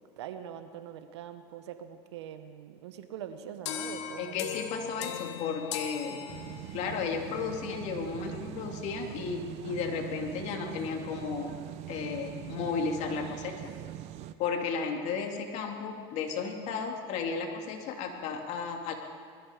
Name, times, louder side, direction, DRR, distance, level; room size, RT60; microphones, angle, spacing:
voice 1, 0.0-4.4, right 9 dB, 85° right, 9 dB, 1.2 m, -43 dB
sound 1, 3.7-6.9, left 8 dB, 85° left, 1.3 m, -38 dB
voice 2, 4.2-6.2 6.7-11.5 11.9-13.7 14.4-18.9, left 5 dB, 55° left, 2 dB, 2.5 m, -34 dB
sound 2, 6.3-14.3, right 13 dB, 50° right, 0.8 m, -42 dB
21.0 x 14.0 x 5.0 m, 2.2 s
supercardioid pair, 115°, 14 cm